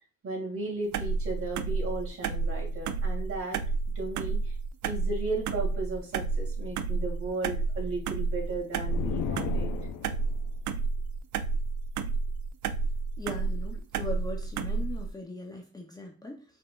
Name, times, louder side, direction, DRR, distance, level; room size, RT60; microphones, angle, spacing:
voice 1, 0.2-3.6 3.9-4.5 4.8-9.7, right 2 dB, 45° right, -2 dB, 2.5 m, -35 dB
sound 1, 0.9-15.1, right 4 dB, 70° right, 0.5 m, -31 dB
sound 2, 8.9-10.4, left 9 dB, 70° left, 0.6 m, -35 dB
voice 2, 13.2-16.4, left 2 dB, 15° left, 1 dB, 0.8 m, -40 dB
5.5 x 3.7 x 2.5 m, 0.35 s
cardioid pair, 90°, 30 cm